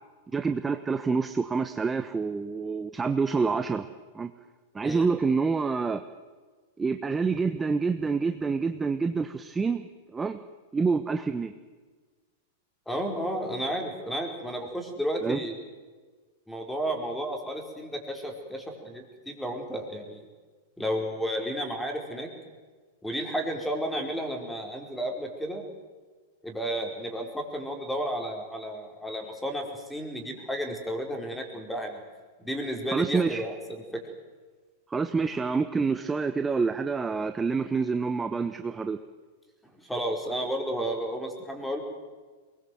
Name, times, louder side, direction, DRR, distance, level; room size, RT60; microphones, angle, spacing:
voice 1, 0.3-3.8 4.1-4.3 4.7-6.0 6.8-9.9 10.1-10.4 10.7-11.5 15.2-15.4 32.9-33.4 34.9-39.0, right 4 dB, 15° right, 9 dB, 1.0 m, -27 dB
voice 2, 12.9-15.5 16.5-20.2 20.8-22.3 23.0-25.6 26.4-32.0 32.4-34.0 39.7-41.8, equal, 5° left, 3 dB, 4.8 m, -32 dB
22.5 x 21.0 x 7.9 m, 1.4 s
hypercardioid pair, 115°, 0 cm